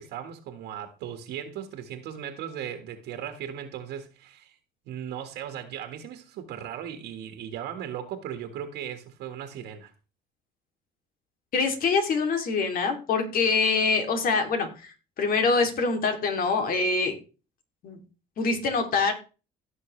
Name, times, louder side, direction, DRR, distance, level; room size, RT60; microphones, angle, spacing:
voice 1, 0.0-4.6 4.8-9.9, right 9 dB, 80° right, 1.7 m, -37 dB
voice 2, 11.5-17.1 17.8-18.0 18.4-19.1, left 4 dB, 60° left, 2.8 m, -25 dB
16.5 x 6.2 x 3.2 m
cardioid pair, 110°, 17 cm